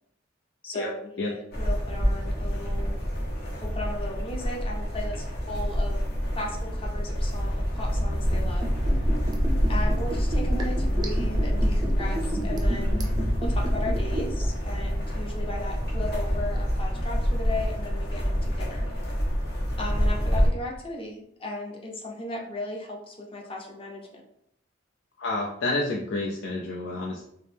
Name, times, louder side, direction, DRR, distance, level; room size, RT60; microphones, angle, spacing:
voice 1, 0.6-3.0 3.6-6.0 6.3-8.7 9.7-13.0 13.4-18.9 19.8-24.2, left 2 dB, 30° left, 0 dB, 0.7 m, -36 dB
sound 1, 1.5-20.5, equal, 55° left, 1.3 m, -26 dB
Liquid, 8.3-14.5 14.7-14.8, right 1 dB, 20° right, 0.5 m, -34 dB
voice 2, 25.2-27.2, left 2 dB, 85° left, -2 dB, 0.5 m, -29 dB
4.5 x 2.0 x 3.4 m, 0.74 s
head